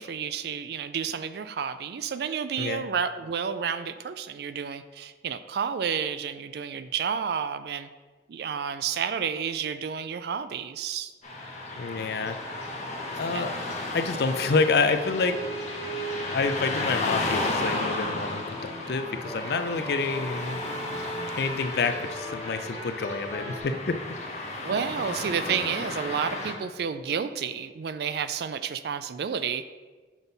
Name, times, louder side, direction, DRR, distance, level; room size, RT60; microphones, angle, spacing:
voice 1, 0.0-7.9 8.3-11.1 13.3-13.5 24.6-29.7, right 7 dB, 60° right, 12 dB, 0.4 m, -30 dB
Car passing by / Traffic noise roadway noise, 11.2-26.5, left 2 dB, 40° left, 1.1 m, -34 dB
voice 2, 11.8-12.4 13.2-13.6 13.9-15.4 16.2-20.6 21.4-24.0, left 4 dB, 60° left, 9 dB, 0.4 m, -28 dB
sound 1, 15.2-23.6, right 1 dB, 20° left, 1.0 m, -39 dB
6.1 x 5.3 x 4.0 m, 1.3 s
head